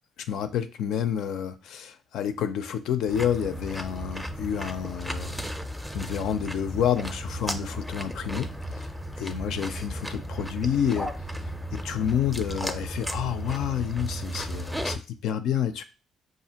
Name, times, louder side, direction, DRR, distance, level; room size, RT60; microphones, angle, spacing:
voice 1, 0.3-5.4 5.9-8.5 9.2-11.1 11.7-15.8, left 9 dB, 80° left, 0.4 m, -29 dB
sound 1, 3.1-15.0, equal, ahead, 0.5 m, -34 dB
5.0 x 2.5 x 2.8 m
cardioid pair, 90°, 0 cm